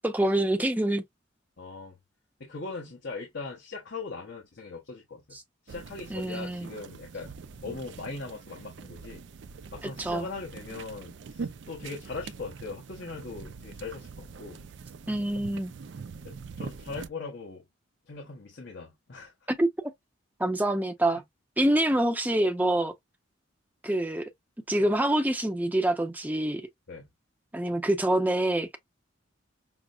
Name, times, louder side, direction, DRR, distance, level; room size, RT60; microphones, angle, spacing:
voice 1, 0.0-1.0 5.3-5.4 6.1-6.7 10.0-10.3 15.1-15.7 19.5-19.9 20.4-21.2 21.6-22.9 23.8-24.3 24.7-26.6 27.5-28.8, right 1 dB, 10° right, 0.6 m, -26 dB
voice 2, 1.6-2.0 2.4-5.2 5.6-7.3 7.6-9.2 9.7-14.6 16.2-17.6 18.1-19.5 21.1-21.2 26.9-27.1, left 3 dB, 60° left, 1.0 m, -40 dB
sound 1, 5.7-17.1, right 5 dB, 60° right, 0.4 m, -43 dB
6.0 x 2.0 x 2.4 m
head